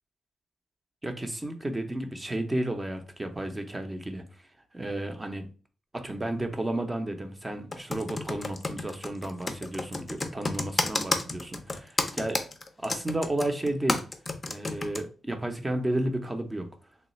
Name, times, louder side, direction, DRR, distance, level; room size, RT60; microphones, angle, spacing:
voice 1, 1.0-4.2 4.7-5.5 5.9-12.4 12.8-14.0 14.5-16.7, right 1 dB, 20° right, 6 dB, 0.6 m, -32 dB
Computer keyboard, 7.7-15.0, left 2 dB, 25° left, 0.5 m, -30 dB
3.1 x 2.3 x 4.1 m, 0.37 s
cardioid pair, 115°, 0 cm